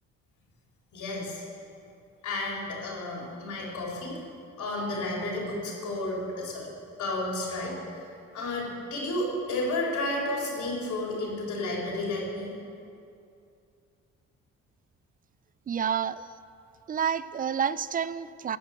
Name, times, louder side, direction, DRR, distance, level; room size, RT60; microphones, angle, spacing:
voice 1, 0.9-1.4 2.2-4.2 4.6-6.7 7.0-7.7 8.3-12.5, left 2 dB, 75° left, -2 dB, 3.4 m, -32 dB
voice 2, 15.7-16.3 16.9-18.6, right 7 dB, 30° right, 16 dB, 0.4 m, -29 dB
15.5 x 5.2 x 7.8 m, 2.5 s
cardioid pair, 90°, 30 cm